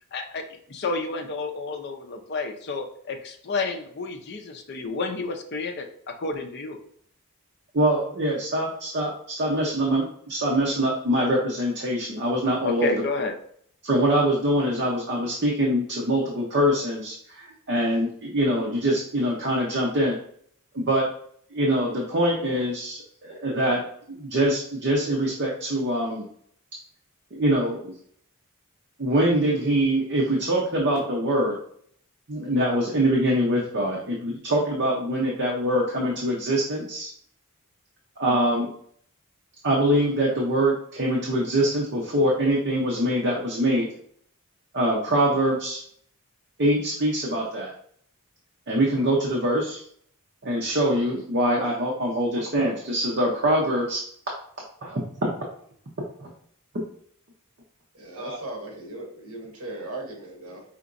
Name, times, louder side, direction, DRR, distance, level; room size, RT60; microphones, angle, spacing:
voice 1, 0.1-5.8 6.2-6.8 12.6-13.3, left 3 dB, 50° left, 4 dB, 0.5 m, -30 dB
voice 2, 7.7-12.9 13.8-20.2 20.7-21.1 21.5-23.8 24.1-26.3 27.3-27.9 29.0-31.6 32.3-37.1 38.2-38.7 39.6-43.9 44.7-45.8 46.6-47.7 48.7-49.8 50.4-54.0 54.8-55.3 56.2-56.3 58.1-58.4, right 1 dB, 50° right, -3 dB, 0.7 m, -24 dB
voice 3, 57.9-60.6, right 2 dB, 80° right, 1 dB, 1.0 m, -37 dB
5.0 x 2.9 x 2.5 m, 0.63 s
head